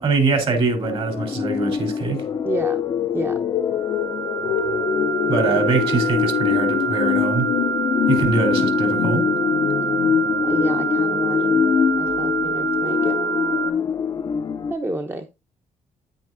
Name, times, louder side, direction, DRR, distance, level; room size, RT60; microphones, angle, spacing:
voice 1, 0.0-2.2 5.3-7.5 8.1-9.2, right 3 dB, 50° right, 3.4 m, -22 dB
sound 1, 0.8-14.7, left 6 dB, 35° left, 0.5 m, -24 dB
sound 2, 2.2-11.1, left 13 dB, 85° left, 0.5 m, -26 dB
voice 2, 2.4-2.8 3.1-3.4 10.4-11.6 12.0-13.2 14.7-15.3, right 2 dB, 15° right, 0.8 m, -30 dB
sound 3, 3.7-13.7, right 7 dB, 75° right, 1.7 m, -26 dB
9.2 x 9.1 x 2.5 m
cardioid pair, 120°, 12 cm